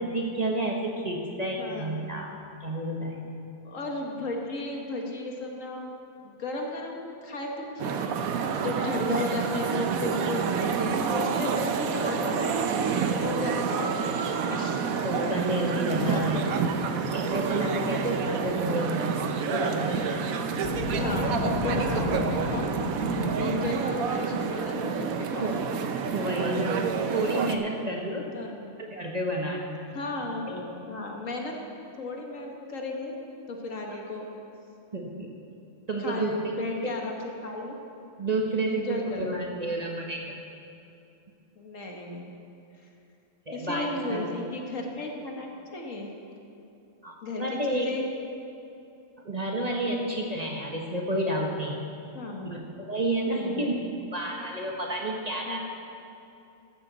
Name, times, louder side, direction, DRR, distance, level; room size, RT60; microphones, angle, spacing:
voice 1, 0.0-2.3 2.6-3.2 9.4-9.6 15.0-16.4 17.1-19.2 19.5-20.3 25.4-25.6 26.1-26.8 27.1-28.3 28.8-29.9 34.9-35.3 35.9-36.5 36.8-36.9 38.2-40.3 43.5-44.3 47.0-47.9 49.2-51.8 52.4-53.7 54.1-55.6, right 1 dB, 30° right, -1 dB, 1.2 m, -30 dB
voice 2, 1.6-2.0 3.6-5.9 6.2-12.6 13.2-14.8 15.9-16.8 17.5-18.0 19.5-20.0 21.0-25.5 27.1-27.2 28.3-28.7 29.9-31.6 32.0-33.1 33.5-34.3 36.0-37.8 38.7-39.3 41.6-42.2 43.5-46.2 47.2-48.1 49.9-50.2 52.1-52.5 53.3-53.8 55.5-55.6, left 2 dB, 65° left, 1 dB, 1.8 m, -34 dB
sound 1, 7.8-27.6, right 6 dB, 75° right, 1.2 m, -28 dB
Boom, 20.6-23.7, left 3 dB, 90° left, 1.5 m, -32 dB
15.0 x 12.5 x 4.0 m, 2.7 s
omnidirectional pair, 1.5 m